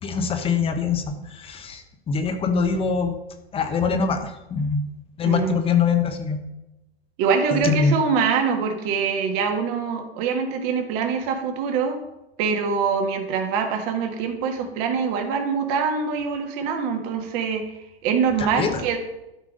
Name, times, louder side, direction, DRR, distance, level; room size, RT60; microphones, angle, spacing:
voice 1, 0.0-3.2 3.5-4.8 5.2-6.4 7.5-8.0 18.4-18.8, left 5 dB, 15° left, 7 dB, 1.0 m, -23 dB
voice 2, 5.3-5.6 7.2-12.0 12.4-17.6 18.0-19.0, right 6 dB, 40° right, 4 dB, 1.7 m, -24 dB
12.0 x 4.8 x 5.2 m, 0.95 s
hypercardioid pair, 115°, 32 cm